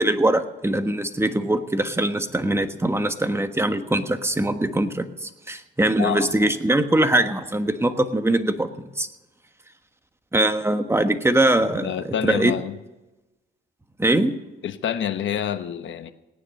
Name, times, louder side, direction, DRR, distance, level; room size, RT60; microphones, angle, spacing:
voice 1, 0.0-8.7 9.0-9.1 10.3-12.5 14.0-14.4, right 1 dB, 15° right, 1.4 m, -22 dB
voice 2, 6.0-6.5 11.7-12.8 14.6-16.1, left 9 dB, 75° left, 1.1 m, -27 dB
18.0 x 9.8 x 6.6 m
cardioid pair, 85°, 20 cm